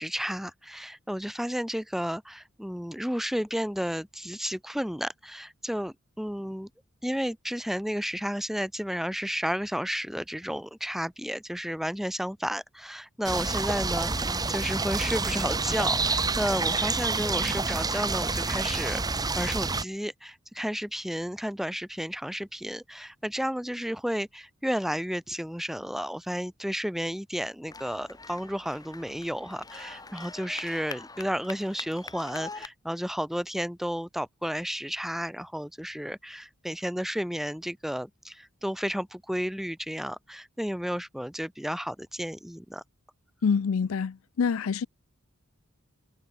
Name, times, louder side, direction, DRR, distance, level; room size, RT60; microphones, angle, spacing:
voice 1, 0.0-6.7 7.0-19.0 19.3-42.8, equal, ahead, 1.0 m, -32 dB
sound 1, 13.2-19.8, right 3 dB, 20° right, 1.4 m, -28 dB
sound 2, 27.7-32.7, left 3 dB, 20° left, 3.3 m, -44 dB
voice 2, 43.4-44.9, left 6 dB, 75° left, 0.4 m, -26 dB
head